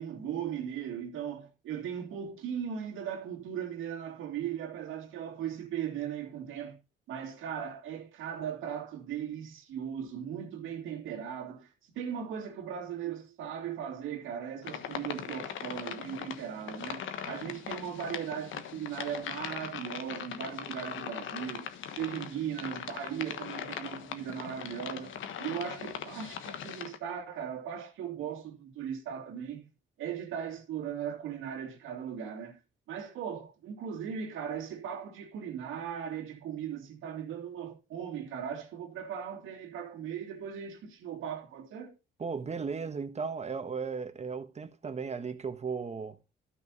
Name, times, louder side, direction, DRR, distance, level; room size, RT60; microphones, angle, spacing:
voice 1, 0.0-6.8 7.1-11.7 12.0-21.7 21.9-29.6 30.0-32.6 32.9-41.9, right 8 dB, 85° right, 2.4 m, -38 dB
sound 1, 14.6-27.0, left 8 dB, 75° left, 1.3 m, -40 dB
voice 2, 42.2-46.2, right 5 dB, 35° right, 1.4 m, -36 dB
13.0 x 5.5 x 4.1 m
cardioid pair, 90°, 20 cm